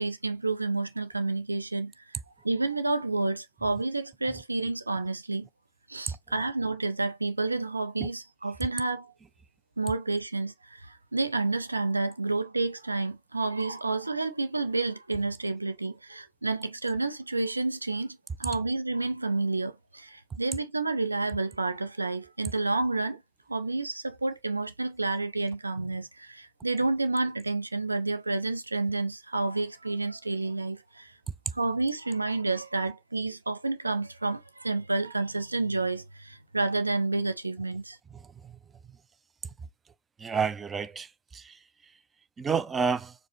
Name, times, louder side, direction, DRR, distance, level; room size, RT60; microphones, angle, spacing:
voice 1, 0.0-2.2 2.4-5.5 5.9-9.1 9.8-23.2 23.5-31.1 31.5-38.0, right 3 dB, 80° right, 0.4 m, -30 dB
voice 2, 40.2-41.6 42.4-43.1, right 5 dB, 20° right, 0.4 m, -30 dB
4.8 x 2.0 x 4.2 m
figure-of-eight pair, 90°, 0 cm